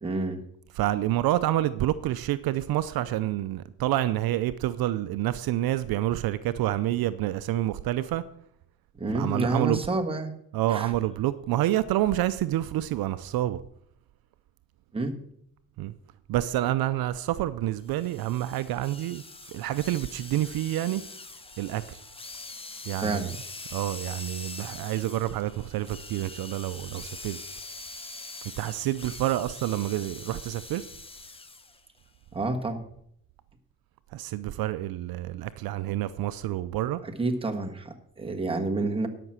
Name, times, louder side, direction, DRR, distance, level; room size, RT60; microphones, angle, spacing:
voice 1, 0.0-0.4 8.9-10.3 10.7-10.9 14.9-15.2 23.0-23.3 32.3-32.8 37.2-39.1, right 2 dB, 15° right, 1.5 m, -29 dB
voice 2, 0.8-8.2 9.1-9.8 10.5-13.6 15.8-15.9 16.3-21.0 21.6-22.0 22.8-23.3 23.7-27.4 28.6-30.9 34.1-37.0, right 14 dB, 75° right, 0.6 m, -28 dB
sound 1, 17.9-31.8, left 3 dB, 15° left, 0.8 m, -43 dB
12.5 x 5.9 x 7.5 m
cardioid pair, 95°, 37 cm